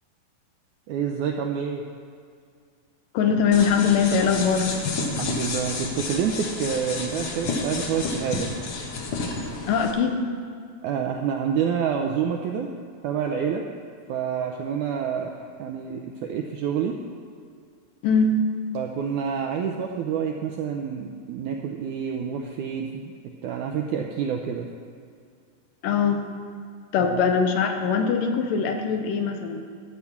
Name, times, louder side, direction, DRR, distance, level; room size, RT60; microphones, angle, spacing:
voice 1, 0.9-1.8 5.2-8.5 10.8-12.7 13.0-13.7 14.1-17.0 18.7-23.1 23.4-24.7 27.1-27.3, right 7 dB, 80° right, 3 dB, 1.8 m, -28 dB
voice 2, 3.1-4.7 9.7-10.2 18.0-18.4 25.8-26.2 26.9-29.6, left 6 dB, 80° left, 5 dB, 2.5 m, -22 dB
sound 1, 3.5-9.9, left 3 dB, 60° left, 1.6 m, -30 dB
13.0 x 5.8 x 8.3 m, 2.2 s
omnidirectional pair, 4.1 m